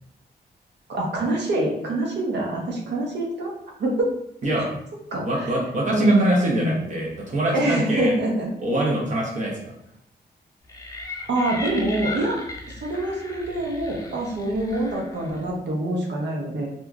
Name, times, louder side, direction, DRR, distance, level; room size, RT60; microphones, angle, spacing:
voice 1, 0.9-3.5 3.8-4.1 5.1-5.5 5.9-6.9 7.5-8.5 11.3-12.4 12.8-16.7, right 1 dB, 80° right, -2 dB, 0.7 m, -24 dB
voice 2, 5.2-8.1 8.6-9.7, right 1 dB, 45° right, -2 dB, 0.8 m, -25 dB
sound 1, 10.7-15.5, left 2 dB, 20° left, 0.4 m, -36 dB
2.8 x 2.3 x 2.4 m, 0.74 s
wide cardioid pair, 125°, 17 cm